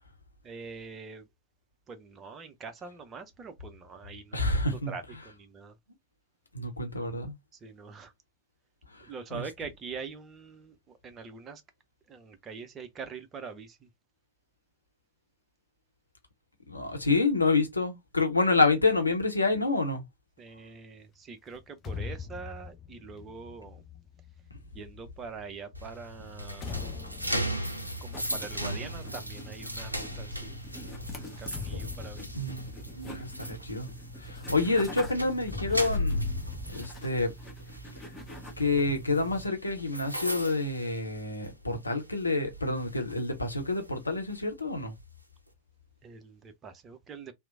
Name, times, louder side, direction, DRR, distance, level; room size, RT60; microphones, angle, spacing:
voice 1, 0.4-1.3 1.9-5.7 7.5-8.1 9.0-11.6 12.1-13.9 20.4-23.8 24.7-27.1 28.0-30.6 31.0-32.3 46.0-47.3, right 5 dB, 25° right, 0.5 m, -44 dB
voice 2, 4.3-4.9 6.5-7.4 8.9-9.4 16.7-20.0 32.3-32.7 33.0-33.9 34.2-36.2 36.7-37.3 38.6-45.0, left 3 dB, 80° left, 0.7 m, -28 dB
sound 1, 21.5-25.3 26.0-29.6 30.9-34.9 35.4-36.9, left 6 dB, 30° left, 0.4 m, -43 dB
sound 2, 25.7-41.7 42.0-42.3 42.8-44.4, equal, 90° right, 0.4 m, -37 dB
sound 3, 28.1-39.5, right 1 dB, 10° left, 0.9 m, -45 dB
2.9 x 2.0 x 2.5 m
figure-of-eight pair, 90°, 0 cm